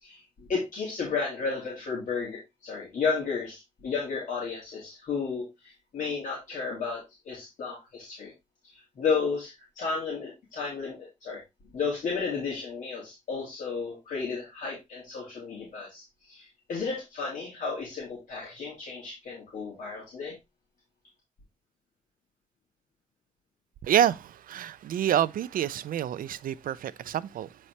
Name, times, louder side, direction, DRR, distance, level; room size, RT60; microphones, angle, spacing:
voice 1, 0.0-8.3 8.7-11.4 11.7-20.3, left 5 dB, 65° left, 2.8 m, -33 dB
voice 2, 23.8-27.6, right 10 dB, 90° right, 0.5 m, -27 dB
8.4 x 4.3 x 3.2 m
wide cardioid pair, 170°, 14 cm